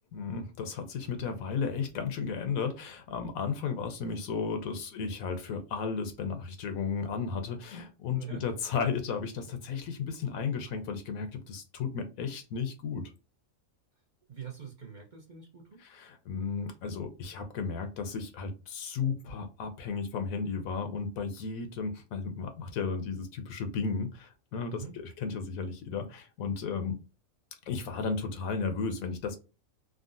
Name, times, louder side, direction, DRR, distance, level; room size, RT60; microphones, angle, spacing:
voice 1, 0.1-13.0 15.8-27.0 27.7-29.4, left 5 dB, 80° left, 1.2 m, -34 dB
voice 2, 8.1-8.4 14.3-15.8 24.7-24.9, right 7 dB, 45° right, 0.7 m, -44 dB
3.6 x 2.1 x 2.5 m
omnidirectional pair, 1.4 m